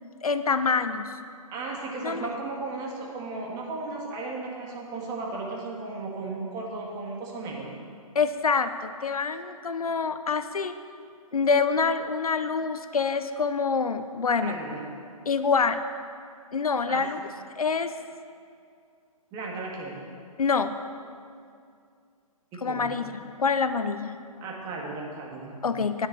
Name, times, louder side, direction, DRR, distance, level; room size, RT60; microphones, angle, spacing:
voice 1, 0.2-1.2 2.0-2.3 8.1-10.7 11.3-14.6 15.3-15.8 16.5-17.2 17.6-17.9 20.4-20.8 22.6-24.2 25.6-26.1, left 5 dB, 75° left, 10 dB, 0.7 m, -26 dB
voice 2, 1.5-7.7 14.4-14.9 16.9-17.1 19.3-20.0 22.5-22.9 24.4-25.5, right 3 dB, 20° right, -2 dB, 1.9 m, -35 dB
10.0 x 6.8 x 8.0 m, 2.3 s
figure-of-eight pair, 130°, 19 cm